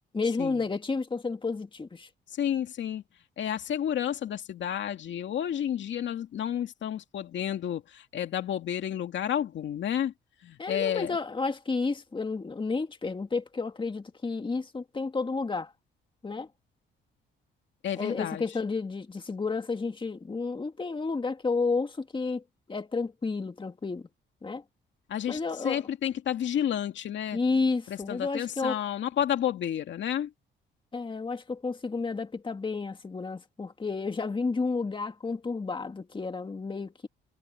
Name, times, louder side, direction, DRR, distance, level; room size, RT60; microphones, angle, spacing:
voice 1, 0.1-2.1 10.6-15.7 16.2-16.5 18.0-22.4 22.7-24.1 24.4-24.6 25.3-25.8 27.3-28.8 30.9-37.1, left 4 dB, 25° left, 2.1 m, -31 dB
voice 2, 2.4-3.0 3.4-10.1 10.4-11.2 17.8-18.4 25.1-27.4 27.9-30.3, left 10 dB, 65° left, 2.4 m, -31 dB
cardioid pair, 90°, 20 cm